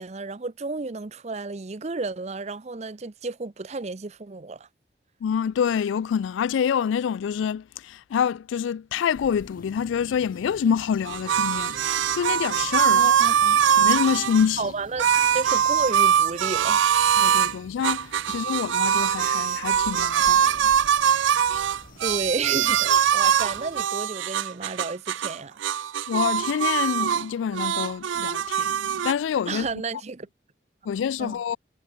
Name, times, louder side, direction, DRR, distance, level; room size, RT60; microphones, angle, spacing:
voice 1, 0.0-4.7 12.9-13.6 14.6-15.1 15.3-16.8 22.0-25.6 29.5-30.3 31.2-31.4, right 3 dB, 35° right, 0.6 m, -32 dB
voice 2, 5.2-13.1 13.8-14.7 17.2-20.7 26.1-29.7 30.9-31.6, left 7 dB, 85° left, 0.3 m, -26 dB
sound 1, 9.1-23.8, left 2 dB, 45° left, 2.7 m, -47 dB
sound 2, 11.1-14.5 15.0-17.5 17.8-25.4 25.6-27.3 27.5-29.1, right 8 dB, 85° right, 0.5 m, -22 dB
head